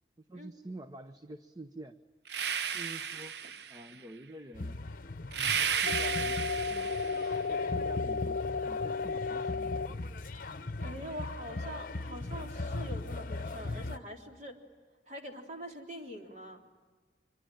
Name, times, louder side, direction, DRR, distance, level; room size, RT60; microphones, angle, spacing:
voice 1, 0.2-2.0 2.7-3.4 3.7-4.8 5.2-6.9 7.5-10.1, right 1 dB, 20° right, 8 dB, 0.8 m, -48 dB
sound 1, 2.3-3.9 5.3-7.4, right 7 dB, 70° right, 0.7 m, -33 dB
sound 2, 4.5-14.0, left 2 dB, 50° left, 0.9 m, -39 dB
sound 3, 5.9-9.9, left 4 dB, 85° left, 0.7 m, -33 dB
voice 2, 10.8-14.6 15.1-16.6, equal, 45° right, 2 dB, 3.6 m, -44 dB
25.5 x 23.5 x 9.3 m, 1.4 s
head